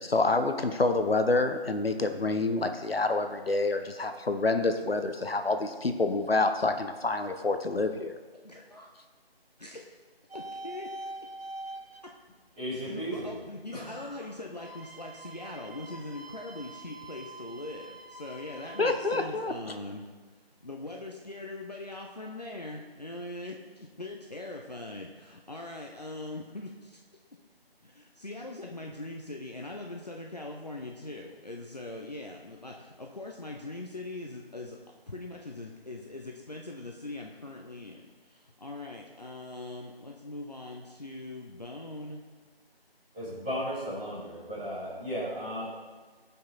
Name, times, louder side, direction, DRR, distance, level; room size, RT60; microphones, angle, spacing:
voice 1, 0.0-8.1 18.8-19.5, left 3 dB, 70° left, 7 dB, 0.8 m, -27 dB
voice 2, 8.4-8.9 9.6-9.8 10.3-10.9 12.8-20.0 20.4-27.0 27.8-34.8 35.1-42.2, left 2 dB, 40° left, 0 dB, 0.7 m, -41 dB
sound 1, 10.3-12.0 14.5-19.2, right 2 dB, 75° right, 1.4 m, -44 dB
voice 3, 12.6-13.3 13.7-14.2 43.1-45.7, equal, 5° right, -15 dB, 2.3 m, -35 dB
14.5 x 5.6 x 3.9 m, 1.4 s
figure-of-eight pair, 165°, 30 cm